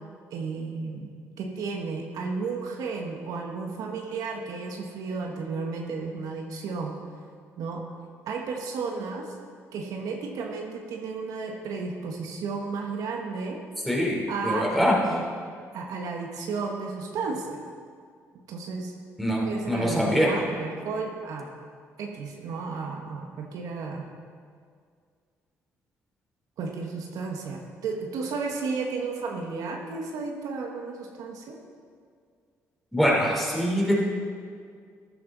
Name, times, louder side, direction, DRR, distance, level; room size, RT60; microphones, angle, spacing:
voice 1, 0.3-1.1 1.4-7.0 7.6-7.8 8.3-9.3 9.7-13.6 14.3-15.2 15.7-17.6 18.5-18.9 19.4-21.5 22.0-24.1 26.6-31.6, right 4 dB, 75° right, 1 dB, 1.3 m, -33 dB
voice 2, 13.9-15.0 19.2-20.3 32.9-33.9, equal, ahead, -3 dB, 3.7 m, -24 dB
13.5 x 10.5 x 4.0 m, 2.1 s
cardioid pair, 80°, 6 cm